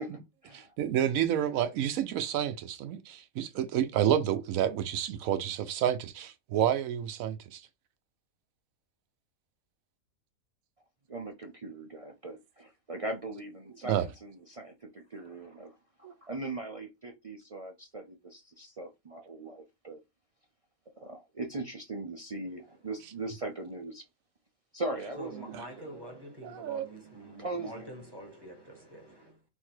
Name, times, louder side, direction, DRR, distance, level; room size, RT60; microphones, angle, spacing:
voice 1, 0.0-0.7 11.1-15.8 16.2-20.0 21.0-24.0 24.7-26.0 27.4-27.9, right 2 dB, 60° right, 0.3 m, -40 dB
voice 2, 0.5-7.6 13.9-14.0 16.0-16.1 26.4-26.8, right 10 dB, 75° right, 1.0 m, -29 dB
voice 3, 25.1-29.4, right 1 dB, 20° right, 1.0 m, -46 dB
3.9 x 2.7 x 4.4 m
omnidirectional pair, 1.5 m